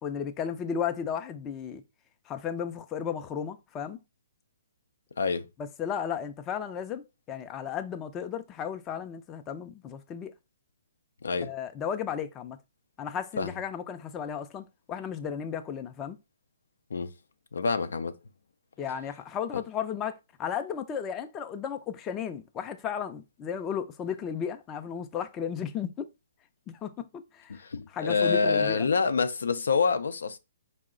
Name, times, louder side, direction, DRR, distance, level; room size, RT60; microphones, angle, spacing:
voice 1, 0.0-1.8 2.3-4.0 5.8-10.3 11.4-12.6 13.0-16.2 18.8-20.1 20.4-26.1 26.7-26.9 27.3-27.5 27.9-28.9, left 8 dB, 20° left, 0.4 m, -34 dB
voice 2, 11.2-11.5 13.4-13.6 16.9-17.1 17.5-18.1 19.5-19.6 27.5-30.4, left 5 dB, 80° left, 0.5 m, -27 dB
4.6 x 2.0 x 3.7 m
hypercardioid pair, 145°, 0 cm